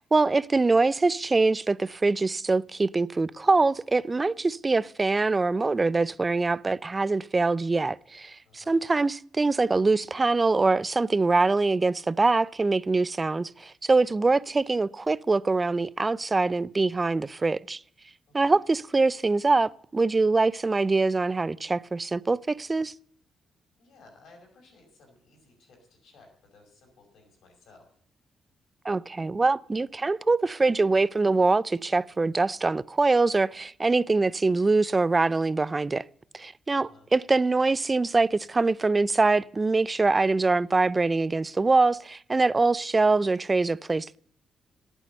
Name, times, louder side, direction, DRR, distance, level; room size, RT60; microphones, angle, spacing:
voice 1, 0.0-17.8 18.3-22.9 28.8-36.0 36.3-44.2, right 3 dB, 30° right, 0.4 m, -24 dB
voice 2, 8.4-8.8 18.3-18.6 23.8-27.9 36.7-37.1, left 3 dB, 70° left, 5.3 m, -57 dB
11.0 x 9.0 x 6.7 m
hypercardioid pair, 45°, 0 cm